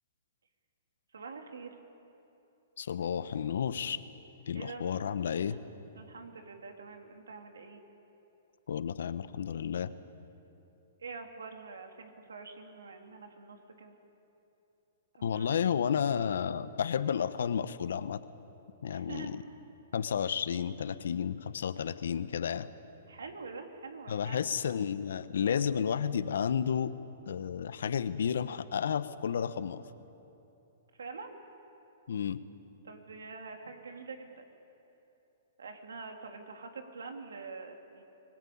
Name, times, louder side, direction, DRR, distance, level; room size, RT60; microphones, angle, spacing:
voice 1, 1.1-1.8 4.5-5.6 5.9-7.8 11.0-13.9 15.1-15.6 18.9-19.3 23.1-24.5 31.0-31.3 32.8-34.4 35.6-38.0, right 4 dB, 85° right, 4 dB, 3.1 m, -45 dB
voice 2, 2.8-4.0 4.5-5.6 8.7-9.9 15.2-18.2 18.8-19.4 19.9-22.7 24.1-26.9 27.3-29.8 32.1-32.4, left 7 dB, 75° left, 14 dB, 1.1 m, -32 dB
24.0 x 20.5 x 8.7 m, 2.9 s
hypercardioid pair, 130°, 0 cm